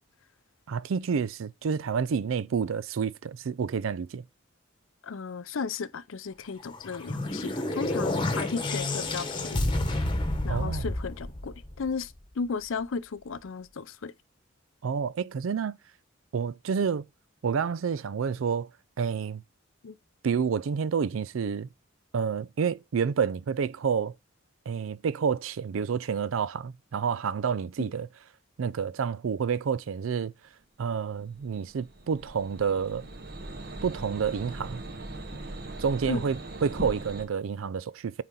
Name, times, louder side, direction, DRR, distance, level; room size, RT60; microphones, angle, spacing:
voice 1, 0.7-4.2 10.5-10.9 14.8-15.8 16.3-17.1 17.4-18.7 19.0-19.4 20.2-21.7 22.1-24.2 24.7-28.1 28.6-30.3 30.8-33.0 33.8-34.8 35.8-38.2, right 6 dB, 75° right, 0.4 m, -29 dB
voice 2, 5.0-9.7 10.4-14.1 19.8-20.0 27.8-27.9 36.1-36.3, left 5 dB, 75° left, 0.5 m, -35 dB
sound 1, 6.7-12.0, left 2 dB, 25° left, 1.1 m, -30 dB
sound 2, 31.2-37.3, right 2 dB, 50° right, 1.1 m, -40 dB
9.0 x 4.2 x 3.8 m
head